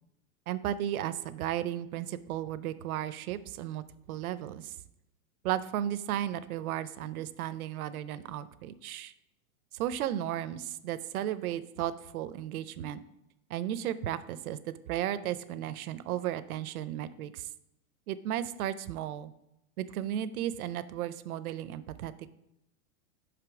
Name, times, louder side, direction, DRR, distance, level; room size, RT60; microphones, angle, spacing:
voice 1, 0.5-4.7 5.4-9.1 9.7-13.0 13.5-17.5 18.1-19.3 19.8-22.4, right 11 dB, 75° right, 14 dB, 0.6 m, -34 dB
5.6 x 5.1 x 4.6 m, 0.85 s
supercardioid pair, 155°, 43 cm